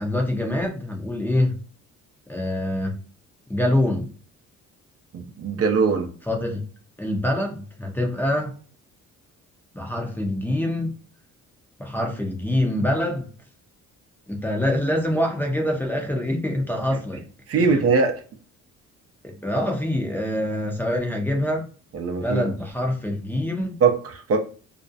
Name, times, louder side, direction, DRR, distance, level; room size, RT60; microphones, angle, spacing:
voice 1, 0.0-1.6 2.3-3.0 3.5-4.1 6.3-6.6 7.0-8.6 9.7-10.9 11.8-13.3 14.3-17.2 17.6-17.8 19.2-21.7 22.2-23.8, left 1 dB, 5° left, 1 dB, 0.6 m, -25 dB
voice 2, 5.1-6.1 17.5-18.2 21.9-22.4 23.8-24.4, right 5 dB, 50° right, 3 dB, 0.5 m, -21 dB
2.4 x 2.0 x 2.6 m, 0.41 s
cardioid pair, 90°, 30 cm